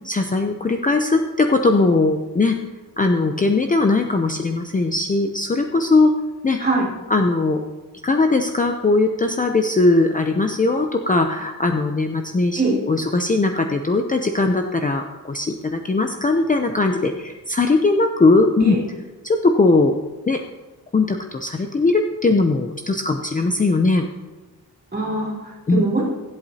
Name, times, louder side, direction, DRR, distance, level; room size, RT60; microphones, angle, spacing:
voice 1, 0.0-2.6 3.0-6.1 6.4-6.6 7.1-7.6 8.0-18.7 19.2-20.0 20.3-20.4 20.9-24.0 25.7-25.9, left 3 dB, 25° left, 4 dB, 0.6 m, -19 dB
voice 2, 24.9-26.0, right 3 dB, 30° right, -4 dB, 3.0 m, -22 dB
23.5 x 8.1 x 2.8 m, 1.2 s
wide cardioid pair, 150°, 35 cm